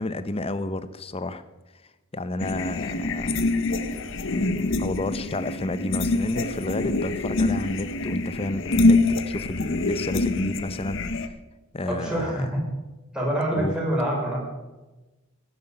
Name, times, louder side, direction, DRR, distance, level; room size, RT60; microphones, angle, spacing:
voice 1, 0.0-1.4 2.1-3.4 4.3-11.3 11.7-12.5 13.6-13.8, left 2 dB, 25° left, 13 dB, 0.7 m, -31 dB
sound 1, 2.4-11.3, left 2 dB, 60° left, 0.9 m, -25 dB
voice 2, 11.9-12.7 13.1-14.4, right 1 dB, 5° right, -4 dB, 5.1 m, -26 dB
15.0 x 11.5 x 5.5 m, 1.1 s
head